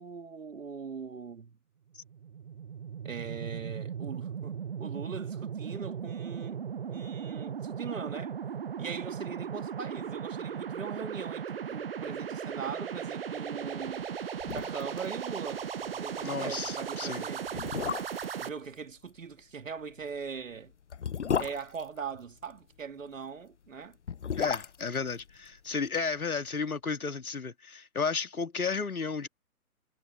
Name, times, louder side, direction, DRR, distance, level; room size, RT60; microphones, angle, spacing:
voice 1, 0.0-1.6 3.0-8.4 8.8-14.1 14.5-17.7 18.4-20.7 21.4-24.0, right 6 dB, 55° right, 2.5 m, -41 dB
sound 1, 1.9-18.5, right 7 dB, 40° right, 0.9 m, -37 dB
sound 2, 14.0-14.1 14.4-15.1 15.3-15.4 15.8-16.0 16.7-16.8 17.5-18.4 19.9-22.6 23.8-26.1 26.3-26.4, left 7 dB, 50° left, 0.8 m, -34 dB
voice 2, 16.2-17.3 24.4-29.3, left 5 dB, 65° left, 2.2 m, -33 dB
figure-of-eight pair, 140°, 45 cm